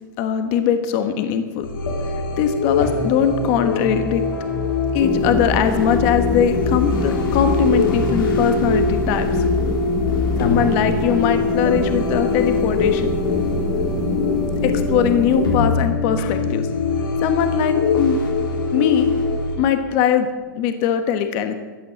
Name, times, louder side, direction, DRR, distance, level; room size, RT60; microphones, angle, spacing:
voice 1, 0.2-1.7 2.4-4.2 4.9-9.3 10.4-13.0 14.6-16.7 17.2-18.2 18.7-19.1 19.6-20.3 20.5-21.5, left 8 dB, 40° left, 8 dB, 1.3 m, -20 dB
sound 1, 1.6-19.6, left 4 dB, 85° left, 4.3 m, -22 dB
sound 2, 5.0-15.6, equal, 5° left, 1.0 m, -26 dB
14.5 x 10.0 x 7.9 m, 1.3 s
hypercardioid pair, 150°, 11 cm